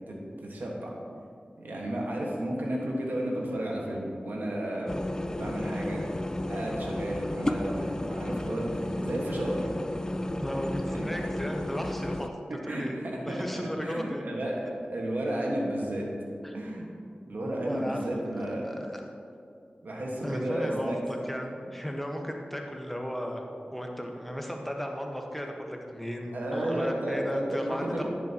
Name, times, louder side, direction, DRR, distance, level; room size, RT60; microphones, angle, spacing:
voice 1, 0.1-1.0 1.6-4.9 5.3-6.1 6.5-9.7 10.9-11.3 12.6-16.1 16.5-16.8 17.3-18.7 19.8-21.0 26.3-28.1, right 1 dB, 80° right, -2 dB, 1.5 m, -32 dB
sound 1, 4.9-12.3, left 1 dB, 20° left, 0.3 m, -33 dB
voice 2, 10.4-14.3 16.4-16.5 17.7-18.0 18.6-19.1 20.2-23.4 23.7-27.8, equal, 5° left, 1 dB, 1.1 m, -35 dB
10.5 x 7.3 x 2.9 m, 2.4 s
cardioid pair, 45°, 3 cm